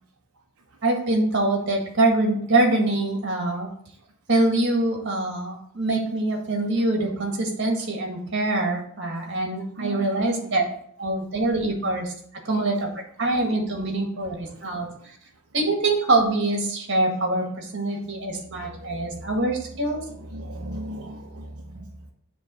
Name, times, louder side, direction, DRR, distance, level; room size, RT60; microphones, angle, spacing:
voice 1, 0.8-3.7 4.3-10.7 11.0-12.1 12.5-12.9 13.2-14.9 15.5-20.0 21.8-21.9, right 2 dB, 55° right, 1 dB, 1.8 m, -24 dB
voice 2, 9.8-10.7 14.2-15.1 17.9-22.1, right 1 dB, 90° right, 0 dB, 0.9 m, -40 dB
7.5 x 3.3 x 6.3 m, 0.64 s
head